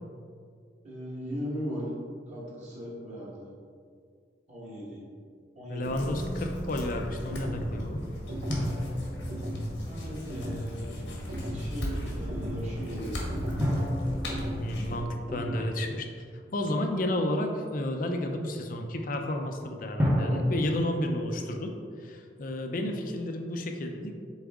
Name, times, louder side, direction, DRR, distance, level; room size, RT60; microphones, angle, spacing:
voice 1, 0.8-1.9 2.3-3.5 4.5-5.0 5.5-6.0 9.8-10.9 11.5-13.3, equal, 40° right, -7 dB, 1.5 m, -38 dB
voice 2, 5.7-8.0 14.6-16.1 16.5-21.7 22.0-24.1, left 1 dB, 50° left, 4 dB, 0.5 m, -31 dB
sound 1, 5.8-15.0, left 1 dB, 85° left, 1.4 m, -37 dB
sound 2, 7.3-7.7 8.3-8.7 9.3-9.7 10.3-10.7 11.3-11.7 12.3-12.7 13.3-13.7 14.3-14.7 15.3-15.7, equal, 65° right, 0.8 m, -35 dB
sound 3, 8.5-10.8 13.6-16.5 20.0-21.9, equal, 10° right, 0.8 m, -32 dB
7.2 x 4.0 x 3.6 m, 2.1 s
head